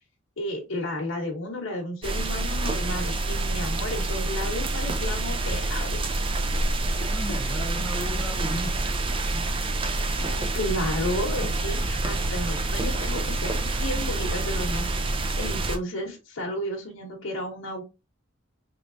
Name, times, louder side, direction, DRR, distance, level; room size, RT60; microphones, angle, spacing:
voice 1, 0.4-6.3 10.1-17.8, left 1 dB, 80° left, 0.9 m, -33 dB
sound 1, 2.0-15.8, right 2 dB, 25° right, 0.4 m, -27 dB
voice 2, 7.0-8.8 9.2-9.4, equal, 5° right, 1.1 m, -35 dB
3.2 x 3.1 x 2.5 m
head